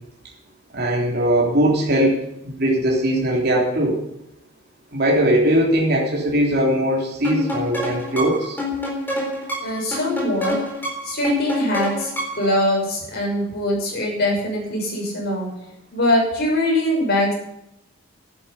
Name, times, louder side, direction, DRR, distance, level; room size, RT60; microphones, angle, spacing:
voice 1, 0.7-2.2 2.4-4.0 4.9-8.6, right 1 dB, 45° right, -3 dB, 3.5 m, -20 dB
sound 1, 7.2-12.5, left 2 dB, 10° left, 3.9 m, -27 dB
voice 2, 9.6-10.6 11.0-15.5 15.9-17.3, left 1 dB, 50° left, -2 dB, 6.3 m, -22 dB
11.5 x 10.5 x 8.2 m, 0.81 s
head